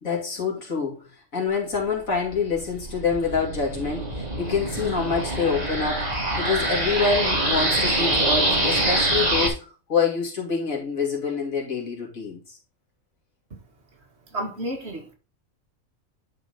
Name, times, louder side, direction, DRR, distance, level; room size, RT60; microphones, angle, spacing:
voice 1, 0.0-6.1 6.4-12.6, left 5 dB, 85° left, 2.9 m, -26 dB
sound 1, 2.2-9.5, right 1 dB, 30° right, 2.3 m, -25 dB
voice 2, 14.3-15.2, right 1 dB, 55° right, 1.9 m, -31 dB
10.0 x 4.5 x 4.0 m
omnidirectional pair, 1.4 m